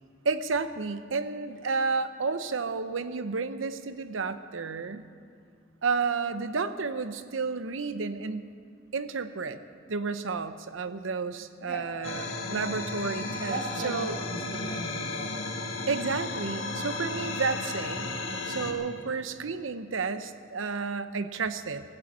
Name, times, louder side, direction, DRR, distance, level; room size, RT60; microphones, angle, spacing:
voice 1, 0.2-5.1 5.8-8.5 8.9-9.6 9.9-13.6 13.8-14.2 15.9-18.1 18.4-21.8, right 4 dB, 80° right, 11 dB, 0.7 m, -31 dB
sound 1, 12.0-18.7, left 2 dB, 90° left, 1.7 m, -34 dB
voice 2, 13.5-15.5 18.5-18.8, right 2 dB, 50° right, 0 dB, 2.3 m, -38 dB
16.0 x 8.8 x 8.7 m, 2.3 s
head